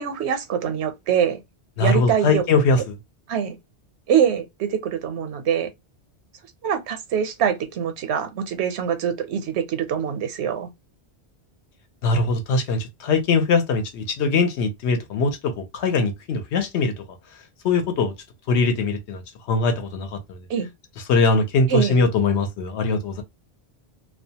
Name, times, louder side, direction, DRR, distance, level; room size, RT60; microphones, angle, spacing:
voice 1, 0.0-1.4 1.8-2.4 3.3-3.6 4.1-5.7 6.6-10.7 20.5-20.7 21.7-22.0, right 8 dB, 85° right, 0.9 m, -24 dB
voice 2, 1.8-3.0 12.0-16.9 17.6-18.1 18.5-19.2 19.5-20.4 21.1-23.2, left 3 dB, 90° left, 1.0 m, -21 dB
2.3 x 2.2 x 2.7 m
omnidirectional pair, 1.1 m